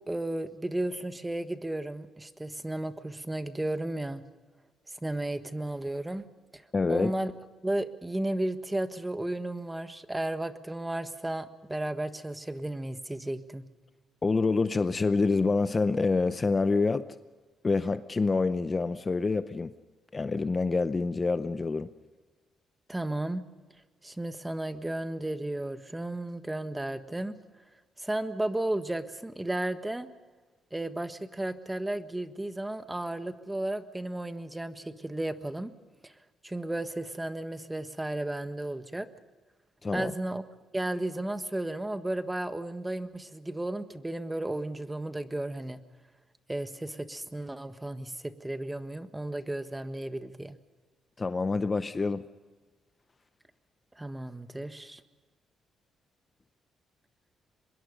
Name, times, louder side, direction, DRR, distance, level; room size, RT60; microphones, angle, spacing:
voice 1, 0.1-4.2 5.0-6.3 6.5-6.6 6.9-7.3 7.6-13.6 22.9-23.4 24.0-27.4 28.0-30.1 30.7-35.7 36.0-36.1 36.4-39.1 39.9-40.4 40.7-45.8 46.5-50.6 54.0-55.0, right 1 dB, 10° right, 1.5 m, -34 dB
voice 2, 6.7-7.1 14.2-17.1 17.6-19.7 20.1-21.9 39.8-40.1 51.2-52.2, left 3 dB, 30° left, 0.7 m, -27 dB
24.5 x 22.0 x 5.3 m
cardioid pair, 90°, 0 cm